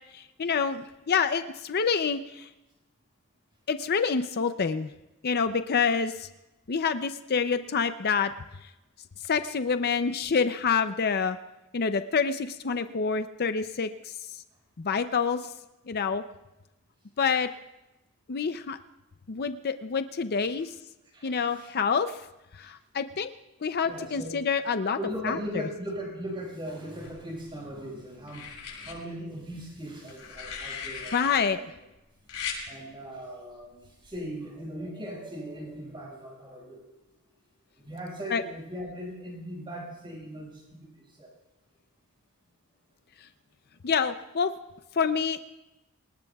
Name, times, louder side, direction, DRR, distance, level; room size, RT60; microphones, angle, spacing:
voice 1, 0.1-2.5 3.7-4.9 5.2-6.3 6.7-8.3 8.6-8.7 9.2-11.4 11.7-14.4 14.8-15.5 15.9-16.2 17.2-17.5 18.3-18.8 19.3-20.7 21.2-22.2 22.5-23.3 23.6-25.0 25.2-25.6 31.1-31.6 38.3-38.4 43.8-44.5 44.9-45.4, left 5 dB, 45° left, 10 dB, 0.5 m, -27 dB
voice 2, 21.1-21.7 22.6-22.7 23.8-24.4 25.0-31.7 32.7-36.9 37.8-41.3, equal, 25° right, -4 dB, 5.9 m, -39 dB
sound 1, 27.0-27.7 28.3-28.9 30.1-31.4 32.3-32.6 34.0-34.2, left 6 dB, 80° left, 7.0 m, -38 dB
27.5 x 19.5 x 2.3 m, 0.99 s
head